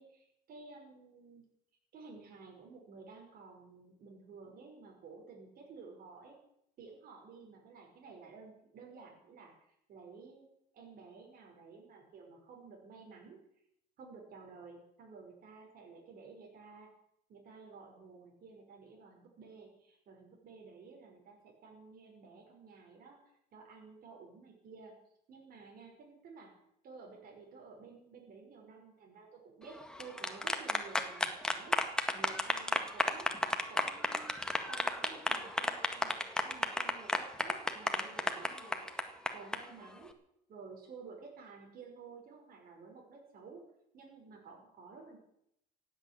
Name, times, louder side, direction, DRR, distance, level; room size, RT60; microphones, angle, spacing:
voice 1, 0.0-1.4 1.9-6.4 6.8-10.5 10.7-13.4 14.0-16.9 17.3-23.2 23.5-24.9 25.3-26.5 26.8-33.3 33.7-36.2 36.4-40.1 40.5-43.6 43.9-45.2, right 4 dB, 60° right, 0 dB, 5.4 m, -53 dB
sound 1, 29.8-39.6, left 1 dB, 5° left, 1.8 m, -32 dB
16.5 x 9.0 x 9.1 m, 0.77 s
cardioid pair, 110°, 17 cm